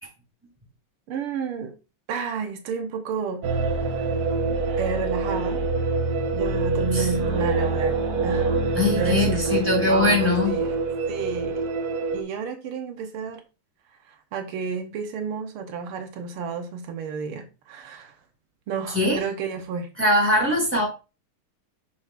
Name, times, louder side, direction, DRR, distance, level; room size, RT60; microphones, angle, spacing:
voice 1, 1.1-1.7 2.1-3.4 3.9-4.1 4.8-5.6 6.3-8.5 8.8-9.6 9.9-10.8 11.1-11.7 12.1-13.4 14.1-18.2 18.7-19.9, right 5 dB, 85° right, 1.8 m, -31 dB
sound 1, 3.4-12.2, right 3 dB, 50° right, 1.3 m, -25 dB
voice 2, 8.7-10.6 18.9-19.2 20.0-20.9, left 2 dB, 5° right, 2.6 m, -21 dB
6.8 x 6.0 x 2.4 m
omnidirectional pair, 2.3 m